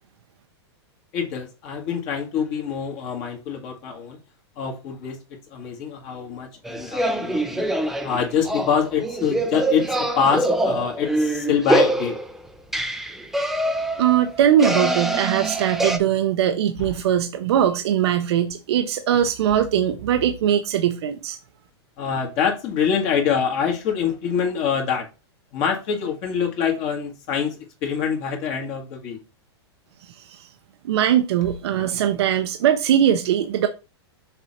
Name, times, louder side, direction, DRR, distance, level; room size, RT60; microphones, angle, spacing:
voice 1, 1.1-4.2 4.6-5.2 5.5-7.7 8.0-12.2 16.8-16.9 22.0-25.1 25.5-29.2, left 7 dB, 40° left, 1.8 m, -25 dB
sound 1, 6.7-16.0, right 1 dB, ahead, 0.6 m, -24 dB
voice 2, 14.0-21.4 30.0-30.5 30.8-33.7, right 10 dB, 70° right, 0.8 m, -21 dB
6.7 x 3.9 x 4.2 m
hypercardioid pair, 145°, 14 cm